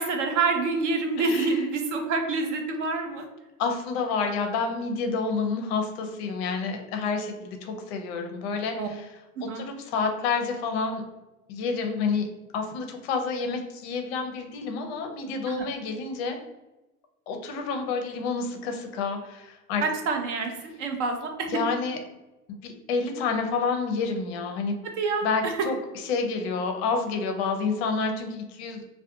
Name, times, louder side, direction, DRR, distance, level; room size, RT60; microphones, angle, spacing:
voice 1, 0.0-3.2 8.8-8.9 9.5-9.6 15.5-15.7 19.8-21.6 25.0-25.7, right 4 dB, 50° right, 4 dB, 0.5 m, -27 dB
voice 2, 1.2-1.6 3.6-9.1 9.4-11.0 11.5-12.3 12.5-16.4 17.3-19.8 21.5-22.0 22.6-24.8 25.2-28.8, left 4 dB, 40° left, 4 dB, 0.5 m, -29 dB
2.3 x 2.2 x 2.6 m, 1.0 s
hypercardioid pair, 120°, 48 cm